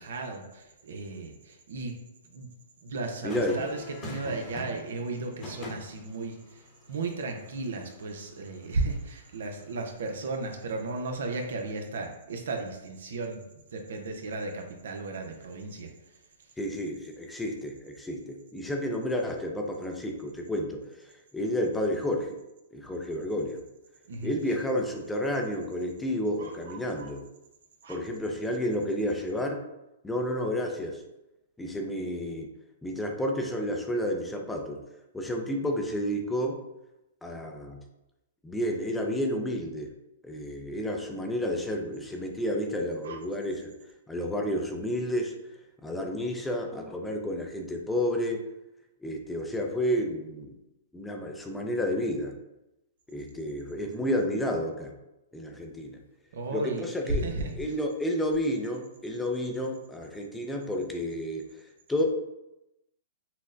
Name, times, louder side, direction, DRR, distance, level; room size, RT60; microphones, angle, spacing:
voice 1, 0.0-1.9 2.3-2.5 2.8-13.4 13.7-16.5 24.1-24.3 26.4-27.1 27.8-28.0 43.0-43.2 56.3-57.6, right 3 dB, 75° right, 4 dB, 0.6 m, -35 dB
voice 2, 3.2-3.6 16.6-20.8 21.3-22.3 22.7-23.6 24.2-27.2 27.9-29.6 30.0-31.0 31.6-32.5 32.8-34.8 35.1-36.6 37.2-37.8 38.4-39.9 40.2-43.7 44.1-45.3 45.8-48.4 49.0-50.5 50.9-52.3 53.1-54.9 55.3-56.0 56.5-57.2 57.6-61.4 61.9-62.0, equal, 10° left, 2 dB, 0.5 m, -30 dB
sound 1, 3.3-9.7 11.4-11.7, left 1 dB, 25° left, 1.0 m, -44 dB
5.8 x 2.1 x 2.5 m, 0.92 s
hypercardioid pair, 135°, 0 cm